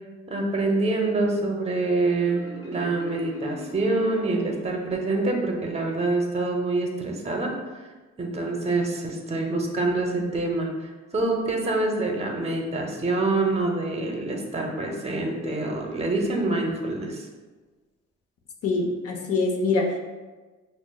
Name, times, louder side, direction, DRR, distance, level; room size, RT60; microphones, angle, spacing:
voice 1, 0.3-7.8 8.2-17.3, right 2 dB, 20° right, 1 dB, 0.6 m, -26 dB
Marimba xylophone, 2.2-5.0, right 1 dB, 15° left, 1.0 m, -41 dB
voice 2, 18.6-20.0, left 3 dB, 50° left, 2 dB, 0.7 m, -24 dB
5.9 x 2.0 x 2.2 m, 1.3 s
cardioid pair, 90°, 30 cm